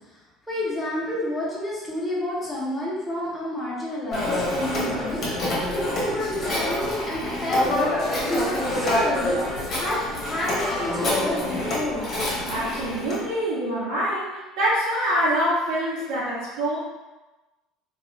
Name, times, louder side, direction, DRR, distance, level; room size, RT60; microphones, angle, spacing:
voice 1, 0.5-12.1, left 1 dB, 10° left, -7 dB, 0.7 m, -30 dB
Telephone, 4.1-13.2, left 1 dB, 30° left, 1.0 m, -26 dB
voice 2, 12.5-16.8, equal, 90° right, -9 dB, 0.8 m, -25 dB
2.6 x 2.3 x 3.1 m, 1.1 s
cardioid pair, 150°, 0 cm